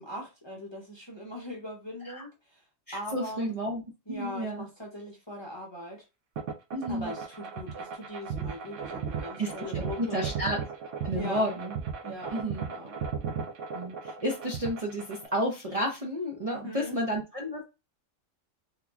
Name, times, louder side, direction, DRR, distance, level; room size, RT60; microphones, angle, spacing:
voice 1, 0.0-2.6 2.9-3.4 4.1-6.1 6.9-10.3 11.1-11.5 12.0-13.0 16.5-17.0, equal, 25° left, 0.8 m, -40 dB
voice 2, 2.9-3.8 4.1-4.7 6.7-7.1 9.4-10.6 11.0-11.8 12.0-12.7 13.7-17.6, equal, 35° right, 0.6 m, -31 dB
sound 1, 6.4-15.3, right 6 dB, 75° right, 1.0 m, -36 dB
3.8 x 2.9 x 2.3 m
omnidirectional pair, 1.3 m